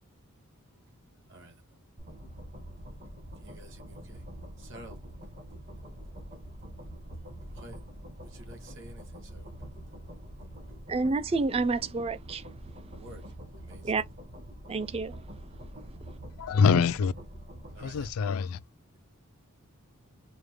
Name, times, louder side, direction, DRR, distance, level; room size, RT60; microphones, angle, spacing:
voice 1, 1.3-1.8 3.4-4.2 4.6-5.0 7.5-7.8 8.2-9.5 13.0-13.2 13.6-13.9 17.7-18.1, right 1 dB, 60° right, 1.5 m, -50 dB
sound 1, 2.0-18.1, right 1 dB, 45° right, 1.4 m, -45 dB
voice 2, 10.9-13.0 13.8-14.0 14.7-15.2, right 3 dB, 25° right, 0.3 m, -30 dB
voice 3, 16.4-17.1 17.8-18.6, left 5 dB, 75° left, 0.3 m, -24 dB
5.1 x 2.1 x 3.2 m
head